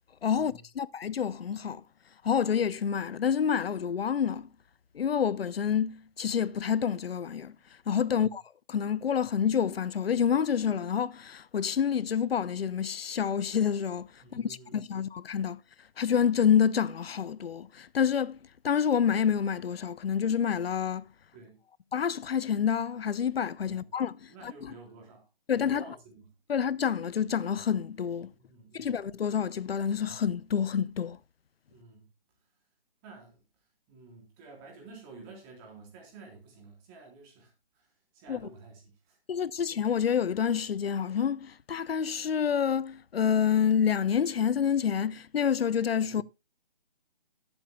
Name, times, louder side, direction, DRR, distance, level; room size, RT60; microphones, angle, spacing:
voice 1, 0.2-1.8 2.2-4.5 4.9-7.6 7.9-8.4 8.7-15.6 16.0-18.4 18.6-21.1 21.9-24.7 25.5-25.8 26.5-28.3 28.7-31.2 38.3-38.5 39.3-46.2, left 8 dB, 85° left, 0.6 m, -28 dB
voice 2, 14.2-14.8 21.3-21.6 23.7-23.9 24.3-25.3 25.5-26.3 28.3-28.9 31.7-32.1 33.0-33.4 33.9-37.5 37.8-37.9 38.1-38.8 39.1-39.2 46.0-46.2, right 3 dB, 20° right, 3.7 m, -51 dB
18.5 x 8.1 x 2.2 m
hypercardioid pair, 160°, 29 cm